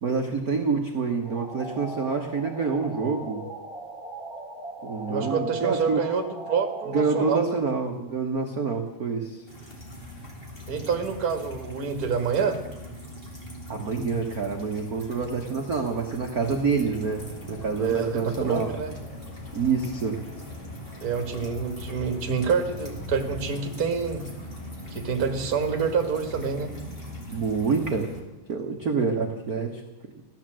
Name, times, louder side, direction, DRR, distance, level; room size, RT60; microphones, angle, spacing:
voice 1, 0.0-3.4 4.8-6.0 6.9-9.4 13.7-18.7 19.5-20.2 27.3-28.1 28.5-29.8, right 5 dB, 85° right, 2 dB, 0.8 m, -27 dB
sound 1, 1.2-7.4, right 2 dB, ahead, 3.3 m, -38 dB
voice 2, 5.1-7.6 10.7-12.6 17.8-18.9 21.0-24.2 24.9-26.7, right 6 dB, 35° right, 5 dB, 1.6 m, -27 dB
sound 2, 9.5-28.2, left 1 dB, 20° left, 2.2 m, -41 dB
sound 3, 16.4-27.2, left 1 dB, 90° left, 4.9 m, -44 dB
15.5 x 11.5 x 7.6 m, 1.1 s
omnidirectional pair, 3.6 m